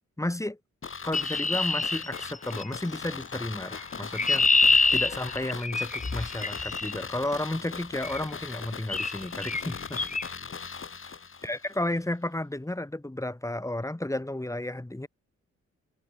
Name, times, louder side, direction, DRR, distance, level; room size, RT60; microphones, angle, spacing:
voice 1, 0.2-0.6 1.0-10.1 11.0-11.2 11.4-15.1, left 1 dB, 10° left, 7.0 m, -33 dB
sound 1, 0.8-11.8 12.0-12.1, left 5 dB, 45° left, 7.4 m, -39 dB
Chirp tweet, 1.1-2.8 3.8-6.9 8.0-8.3 8.9-9.2 9.4-9.6 10.0-10.2, left 3 dB, 25° left, 3.5 m, -26 dB
cardioid pair, 100°, 29 cm